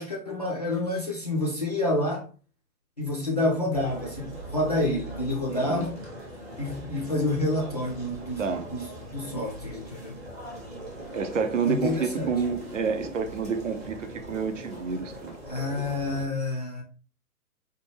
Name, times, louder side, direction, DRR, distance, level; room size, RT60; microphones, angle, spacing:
voice 1, 0.0-2.2 3.0-5.9 6.6-10.2 11.7-12.3 15.5-16.8, left 1 dB, 30° left, 0.3 m, -28 dB
sound 1, 3.7-16.2, right 1 dB, 15° right, 0.6 m, -41 dB
voice 2, 5.5-5.9 8.4-8.6 11.1-15.4, right 5 dB, 55° right, 0.6 m, -29 dB
4.1 x 2.2 x 3.1 m
figure-of-eight pair, 120°, 44 cm